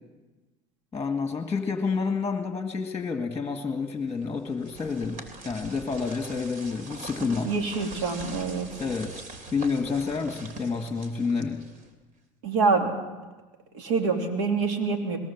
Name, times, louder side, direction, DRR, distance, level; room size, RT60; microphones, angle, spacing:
voice 1, 0.9-7.5 8.8-9.2 9.5-11.6, left 5 dB, 15° left, 5 dB, 1.8 m, -29 dB
sound 1, 4.2-12.0, right 3 dB, 55° right, 3.2 m, -43 dB
voice 2, 7.2-8.7 12.4-12.9 13.7-15.2, right 4 dB, 80° right, 3 dB, 2.9 m, -26 dB
21.0 x 18.0 x 7.3 m, 1.2 s
supercardioid pair, 90°, 16 cm